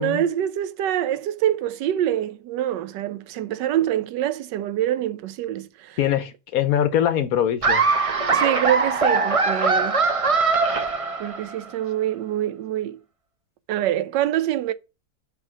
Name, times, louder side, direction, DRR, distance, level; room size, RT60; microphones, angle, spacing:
voice 1, 0.0-6.0 8.3-10.0 11.2-13.0 13.7-14.7, right 12 dB, 80° right, 1.2 m, -25 dB
voice 2, 6.0-7.8, left 10 dB, 65° left, 1.0 m, -22 dB
Laughter, 7.6-11.6, right 4 dB, 50° right, 0.4 m, -21 dB
5.6 x 4.6 x 5.9 m
omnidirectional pair, 1.9 m